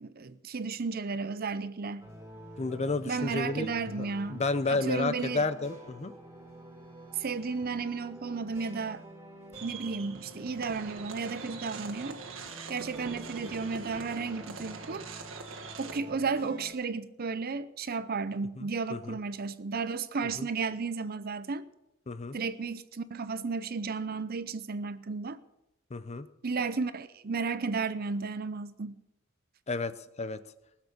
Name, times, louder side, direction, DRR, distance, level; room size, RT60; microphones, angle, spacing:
voice 1, 0.0-2.1 3.1-4.4 4.7-5.5 7.2-9.0 9.6-12.2 12.7-15.1 15.8-21.6 22.3-25.4 26.4-29.0, right 4 dB, 50° right, 0.6 m, -33 dB
sound 1, 2.0-16.7, equal, 15° right, 3.7 m, -48 dB
voice 2, 2.6-3.7 4.0-6.1 18.6-19.2 20.4-20.5 22.1-22.4 25.9-26.3 29.7-30.4, left 3 dB, 30° left, 0.6 m, -32 dB
sound 2, 9.5-16.0, right 5 dB, 70° right, 1.5 m, -44 dB
20.0 x 7.3 x 6.5 m
head